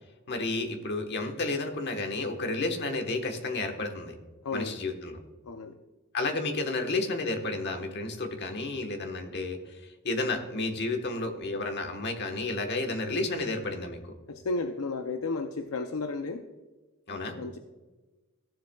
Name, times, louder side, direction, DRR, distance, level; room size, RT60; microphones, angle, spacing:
voice 1, 0.3-4.1 4.5-5.2 6.1-14.1 17.1-17.4, left 2 dB, 50° left, 4 dB, 1.2 m, -31 dB
voice 2, 4.4-4.8 5.5-5.8 14.3-16.4 17.4-17.6, left 3 dB, 70° left, 7 dB, 0.5 m, -33 dB
14.5 x 7.5 x 2.3 m, 1.2 s
head